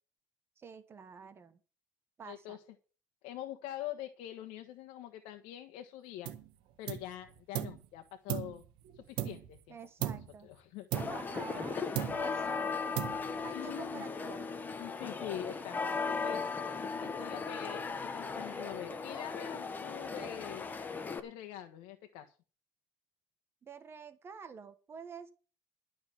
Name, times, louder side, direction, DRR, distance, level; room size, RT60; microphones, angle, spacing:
voice 1, 0.6-1.6 2.2-2.6 9.7-10.5 10.9-11.8 12.2-13.0 13.4-14.5 23.6-25.3, right 6 dB, 30° right, 10 dB, 1.3 m, -48 dB
voice 2, 2.2-2.6 3.2-6.3 6.8-8.6 8.9-10.2 10.4-10.9 12.0-12.5 13.5-14.0 14.8-17.8 18.1-20.7 21.2-22.3, left 12 dB, 85° left, 6 dB, 1.3 m, -45 dB
sound 1, 6.2-6.5 6.9-7.8 8.3-9.6 10.0-10.4 10.9-11.7 11.9-12.5 12.9-13.5, right 12 dB, 75° right, 1.6 m, -38 dB
sound 2, 10.9-21.2, left 4 dB, 20° left, 1.4 m, -37 dB
12.5 x 5.9 x 8.7 m, 0.37 s
cardioid pair, 145°, 9 cm